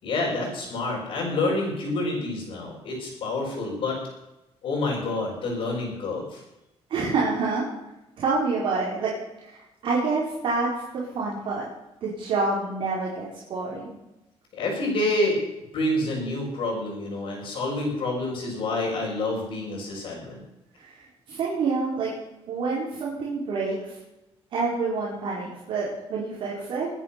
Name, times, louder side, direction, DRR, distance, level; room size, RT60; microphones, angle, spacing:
voice 1, 0.0-4.0 4.6-6.4 14.5-15.4 15.7-20.4, left 2 dB, 55° left, -6 dB, 5.8 m, -28 dB
voice 2, 6.9-7.7 8.2-9.1 9.4-11.7 12.0-13.9 20.8-22.1 22.5-24.0 24.5-26.9, right 4 dB, 55° right, -6 dB, 4.9 m, -27 dB
22.5 x 10.0 x 6.1 m, 0.93 s
cardioid pair, 165°, 11 cm